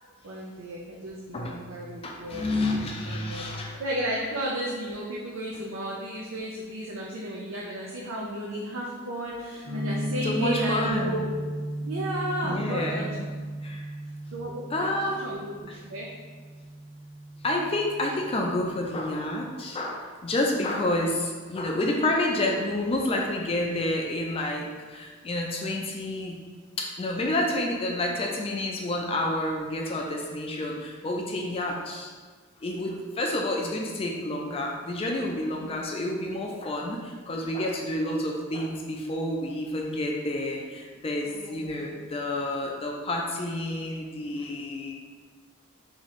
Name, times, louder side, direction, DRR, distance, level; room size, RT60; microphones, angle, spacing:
voice 1, 0.2-2.4 2.7-3.5 3.8-11.3 11.8-13.0 14.3-14.9 15.2-16.1 35.5-35.8 41.2-42.0, right 1 dB, 90° right, -3 dB, 0.6 m, -34 dB
voice 2, 2.0-3.7 10.2-11.3 12.4-13.9 14.7-15.2 17.4-26.4 26.8-32.1 32.6-45.0, left 1 dB, 30° left, 0 dB, 0.4 m, -29 dB
sound 1, 9.6-19.4, right 1 dB, 30° right, 1.0 m, -36 dB
3.7 x 3.0 x 4.1 m, 1.5 s
head